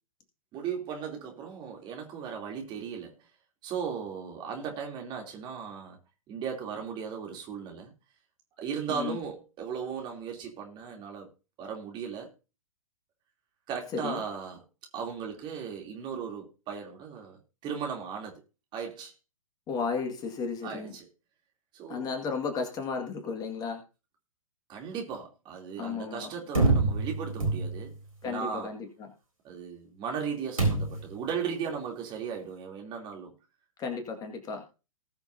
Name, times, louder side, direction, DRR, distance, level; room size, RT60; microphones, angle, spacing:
voice 1, 0.5-3.1 3.6-6.0 6.3-7.9 8.6-11.3 11.6-12.3 13.7-14.6 14.9-18.4 18.7-19.1 20.6-21.1 21.7-22.1 24.7-27.9 28.2-28.7 29.4-33.3, right 7 dB, 25° right, 3.1 m, -37 dB
voice 2, 8.9-9.2 13.9-14.2 19.7-21.0 21.9-23.8 25.8-26.3 28.2-29.1 33.8-34.6, left 5 dB, 20° left, 2.0 m, -34 dB
sound 1, 26.6-28.0 30.6-31.2, right 3 dB, 85° right, 3.5 m, -26 dB
19.5 x 6.9 x 2.7 m
figure-of-eight pair, 110°, 18 cm